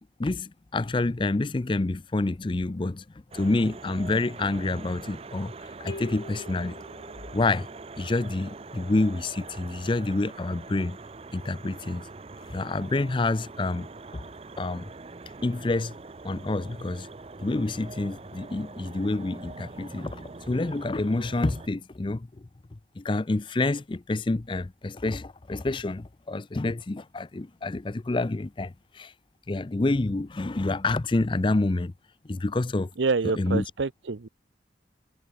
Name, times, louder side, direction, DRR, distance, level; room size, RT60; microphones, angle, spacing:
voice 1, 0.2-3.0 3.3-6.8 7.3-7.7 8.0-11.0 11.3-12.1 12.5-13.9 14.1-14.3 14.6-14.8 15.4-15.9 16.2-17.1 17.4-22.5 23.0-29.1 29.5-31.9 32.2-32.9 33.4-33.6, left 2 dB, 25° left, 0.5 m, -28 dB
sound 1, 3.3-21.7, right 3 dB, 30° right, 0.6 m, -43 dB
sound 2, 5.9-7.8, left 3 dB, 60° left, 0.8 m, -43 dB
voice 2, 33.0-34.3, right 4 dB, 75° right, 0.7 m, -27 dB
head